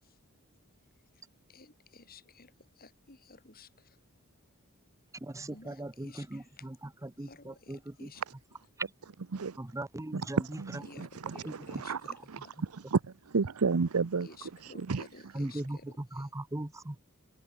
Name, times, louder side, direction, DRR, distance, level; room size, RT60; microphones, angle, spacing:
voice 1, 1.5-4.0 5.5-6.7 7.2-8.2 10.8-12.5 14.2-16.3, left 3 dB, 45° left, 6.7 m, -54 dB
voice 2, 5.2-6.7 7.0-8.1 9.6-10.6 11.4-11.8 15.3-17.0, right 1 dB, 15° right, 0.7 m, -39 dB
voice 3, 10.1-12.0 12.7-14.3 14.6-15.0, right 4 dB, 85° right, 0.7 m, -31 dB
head